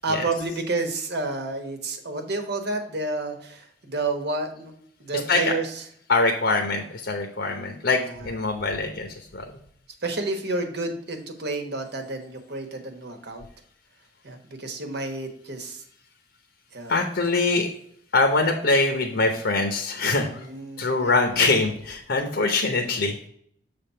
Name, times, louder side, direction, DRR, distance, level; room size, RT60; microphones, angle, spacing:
voice 1, 0.0-4.7 5.0-5.6 7.4-7.8 10.0-13.5 14.2-15.8 16.7-17.1 20.3-21.2, right 2 dB, 65° right, 5 dB, 1.2 m, -30 dB
voice 2, 5.1-5.6 6.1-9.4 16.9-17.7 18.1-20.5 20.8-23.3, left 3 dB, 70° left, 4 dB, 0.8 m, -23 dB
6.9 x 3.5 x 5.6 m, 0.67 s
head